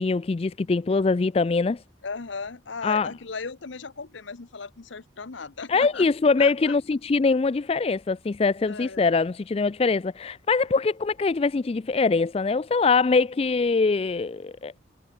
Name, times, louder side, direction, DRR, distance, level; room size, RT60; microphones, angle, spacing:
voice 1, 0.0-1.8 2.8-3.1 5.7-14.7, left 4 dB, 30° left, 0.3 m, -23 dB
voice 2, 2.0-6.1 6.4-6.8 8.7-9.1, left 4 dB, 70° left, 0.9 m, -36 dB
head